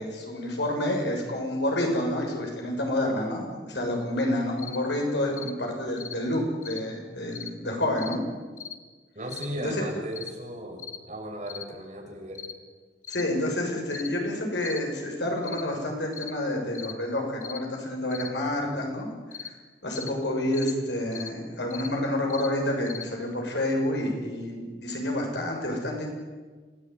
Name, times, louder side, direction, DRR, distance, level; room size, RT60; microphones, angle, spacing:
voice 1, 0.0-8.2 9.6-9.8 13.1-19.6 19.8-26.1, left 1 dB, 80° left, 1 dB, 7.1 m, -29 dB
sound 1, 4.6-4.8 5.3-5.5 6.0-6.2 6.6-6.8 7.3-7.5 8.0-8.2 8.6-8.8 9.3-9.5 10.1-10.3 10.8-11.0 11.5-11.7 12.3-12.6 13.0-13.3 13.9-14.1 14.6-14.8 15.4-15.7 16.1-16.3 16.7-17.0 17.4-17.6 18.1-18.3 19.3-19.5 19.9-20.1 20.5-20.8 21.1-21.3 21.7-21.9 22.3-22.5 22.9-23.1, left 7 dB, 45° left, 1.7 m, -39 dB
voice 2, 9.1-12.4, equal, 40° right, 0 dB, 6.4 m, -36 dB
26.0 x 17.5 x 9.7 m, 1.4 s
head